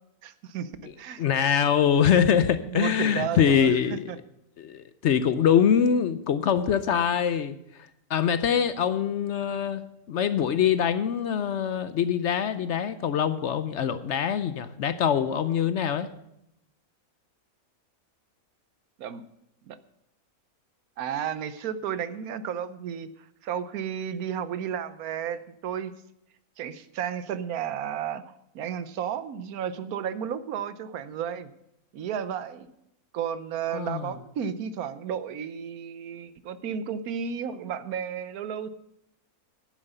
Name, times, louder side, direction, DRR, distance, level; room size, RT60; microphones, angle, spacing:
voice 1, 0.2-1.2 2.6-4.2 19.0-19.2 19.7-19.8 21.0-23.1 23.4-25.9 26.6-31.5 31.9-32.7 33.1-38.7, right 8 dB, 80° right, 14 dB, 1.2 m, -33 dB
voice 2, 1.2-4.0 4.6-7.6 8.1-16.1 33.7-34.1, left 8 dB, 65° left, 13 dB, 0.8 m, -24 dB
9.7 x 7.5 x 7.9 m, 0.81 s
omnidirectional pair, 1.5 m